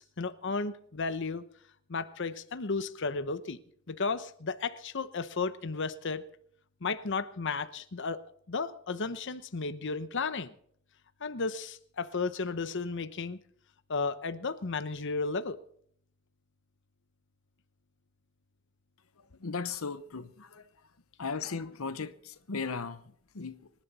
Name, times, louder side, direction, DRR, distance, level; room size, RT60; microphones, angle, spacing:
voice 1, 0.0-1.4 1.9-3.6 3.9-6.3 6.8-8.2 8.5-10.5 11.2-13.4 13.9-15.6, left 4 dB, 60° left, 0.9 m, -34 dB
voice 2, 19.2-20.9 21.2-23.7, left 5 dB, 90° left, 0.9 m, -37 dB
25.0 x 11.5 x 4.2 m
head